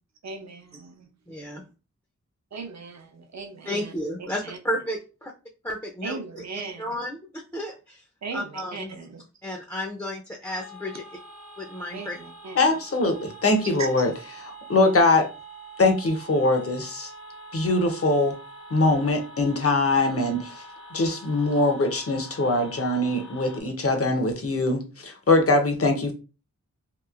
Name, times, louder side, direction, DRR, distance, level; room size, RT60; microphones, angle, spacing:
voice 1, 0.2-1.1 2.5-3.9 4.2-4.6 6.0-6.8 8.2-9.2 11.9-12.6 13.6-14.1, right 4 dB, 65° right, 0.6 m, -38 dB
voice 2, 1.3-1.6 3.7-5.0 5.6-6.2 6.8-8.0 8.3-8.9 9.4-11.0 11.6-12.2, equal, 10° left, 0.5 m, -32 dB
sound 1, 10.4-23.6, right 1 dB, 90° left, 1.1 m, -45 dB
voice 3, 12.5-14.1 14.5-15.3 15.8-17.1 17.5-18.3 18.7-20.6 20.9-26.1, left 2 dB, 50° left, 0.7 m, -22 dB
3.0 x 2.5 x 2.4 m
wide cardioid pair, 70°, 29 cm